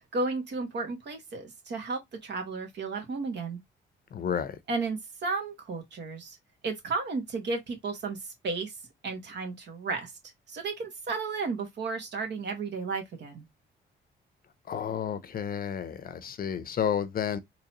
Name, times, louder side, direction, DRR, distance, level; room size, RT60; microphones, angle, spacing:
voice 1, 0.1-3.6 4.7-6.4 6.6-8.7 9.0-10.1 10.5-13.4, right 4 dB, 60° right, 1.6 m, -33 dB
voice 2, 4.1-4.6 14.7-17.4, left 8 dB, 50° left, 0.6 m, -31 dB
3.8 x 3.0 x 2.9 m
cardioid pair, 90°, 20 cm